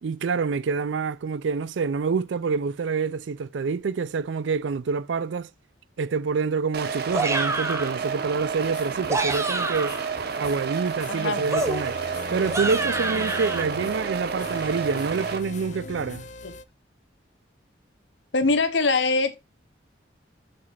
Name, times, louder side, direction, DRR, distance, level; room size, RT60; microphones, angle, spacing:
voice 1, 0.0-5.5 6.0-10.0 10.4-12.0 12.3-16.3, right 5 dB, 85° right, 0.4 m, -27 dB
sound 1, 6.7-15.4, right 6 dB, 60° right, 0.8 m, -30 dB
sound 2, 7.1-8.0 8.9-10.1 11.5-13.6, right 2 dB, 15° right, 0.8 m, -28 dB
sound 3, 8.6-16.6, left 3 dB, 40° left, 0.4 m, -41 dB
voice 2, 11.1-11.4 16.4-16.5 18.3-19.3, left 3 dB, 80° left, 0.9 m, -23 dB
5.3 x 4.2 x 5.6 m
head